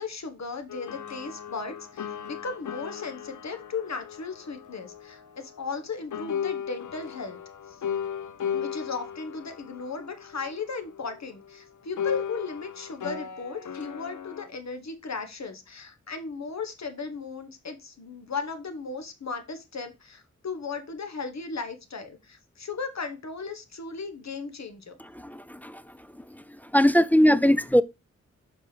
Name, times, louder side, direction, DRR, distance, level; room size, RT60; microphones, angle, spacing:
voice 1, 0.0-7.4 8.5-25.0, left 4 dB, 65° left, 1.3 m, -36 dB
sound 1, 0.7-5.8 6.1-11.6 12.0-14.5, left 8 dB, 90° left, 0.7 m, -36 dB
voice 2, 25.1-25.8 26.2-26.4 26.7-27.8, equal, 5° left, 0.4 m, -21 dB
7.1 x 5.2 x 3.3 m
wide cardioid pair, 90°, 29 cm